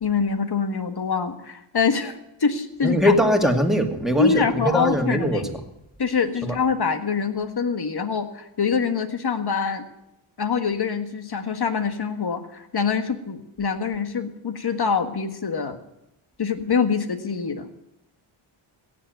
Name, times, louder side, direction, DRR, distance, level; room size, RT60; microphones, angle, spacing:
voice 1, 0.0-3.1 4.2-5.5 6.0-9.8 10.4-15.8 16.4-17.7, left 5 dB, 50° left, 8 dB, 1.7 m, -25 dB
voice 2, 2.8-5.6 6.4-6.5, equal, ahead, 3 dB, 2.2 m, -21 dB
16.5 x 7.3 x 9.3 m, 0.89 s
cardioid pair, 60°, 49 cm